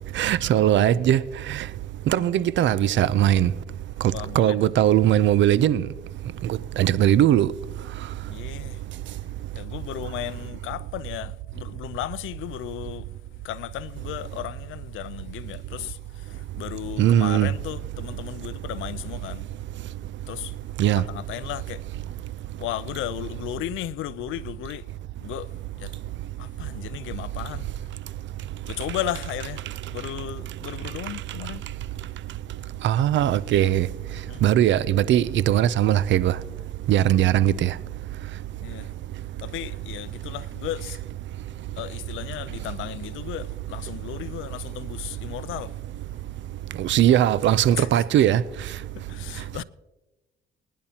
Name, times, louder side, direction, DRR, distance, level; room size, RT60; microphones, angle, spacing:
voice 1, 0.1-1.2 1.5-1.6 2.1-3.5 4.4-5.9 6.4-7.5 17.0-17.5 20.8-21.0 32.8-33.9 34.4-36.3 36.9-37.7 46.8-48.4, right 11 dB, 70° right, 0.5 m, -19 dB
voice 2, 2.1-2.5 4.1-4.7 8.3-8.8 9.5-13.1 13.4-19.7 20.3-20.6 21.0-21.8 22.6-24.9 25.2-26.0 26.4-27.8 28.7-31.7 34.1-34.4 38.6-38.9 39.4-41.0 41.8-45.8 47.8-48.0 48.9-49.6, left 13 dB, 85° left, 0.5 m, -35 dB
23.5 x 10.5 x 2.8 m
cardioid pair, 90°, 20 cm